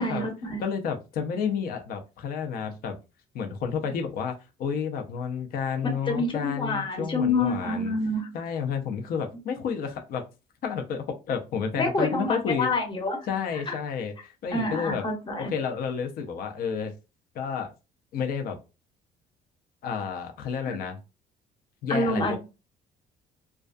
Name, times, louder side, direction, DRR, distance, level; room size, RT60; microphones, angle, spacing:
voice 1, 0.0-0.6 6.1-8.3 11.8-13.2 13.7-13.8 14.5-15.5 20.7-20.8 21.9-22.4, left 2 dB, 30° left, 0.9 m, -27 dB
voice 2, 0.6-2.9 3.3-8.0 8.3-10.2 10.6-12.7 13.3-15.0 15.4-16.9 17.3-17.7 18.1-18.6 19.8-21.0 21.8-22.4, left 6 dB, 60° left, 0.5 m, -31 dB
2.3 x 2.3 x 2.4 m
cardioid pair, 110°, 17 cm